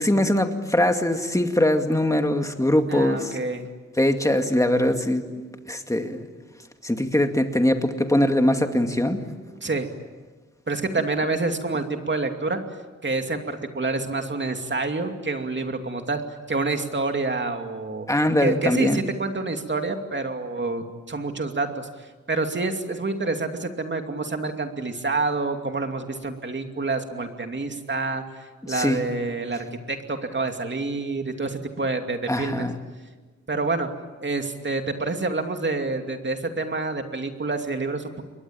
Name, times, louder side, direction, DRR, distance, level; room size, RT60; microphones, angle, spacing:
voice 1, 0.0-3.4 4.0-5.3 5.7-6.3 6.8-9.2 18.1-19.0 28.7-29.0 32.3-32.8, left 1 dB, 10° left, 5 dB, 2.3 m, -22 dB
voice 2, 2.9-3.7 9.6-9.9 10.7-12.6 13.0-16.2 16.5-18.1 18.4-32.7 33.5-33.9 34.2-38.2, right 3 dB, 40° right, 5 dB, 2.7 m, -28 dB
28.5 x 23.0 x 8.9 m, 1.3 s
wide cardioid pair, 120°, 29 cm